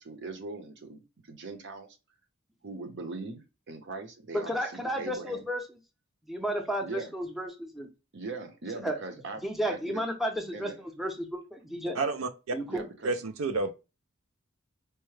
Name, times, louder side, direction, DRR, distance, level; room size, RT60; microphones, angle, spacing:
voice 1, 0.0-2.0 2.6-5.5 6.8-7.1 8.1-9.4 9.7-10.0 10.5-10.8 12.7-13.2, right 3 dB, 60° right, 0.8 m, -40 dB
voice 2, 4.3-5.6 6.3-7.9 8.8-9.0 9.4-12.0 12.5-12.8, equal, ahead, 0.6 m, -32 dB
voice 3, 11.9-12.6 13.0-13.7, right 3 dB, 85° right, 0.5 m, -30 dB
4.6 x 2.1 x 3.1 m
head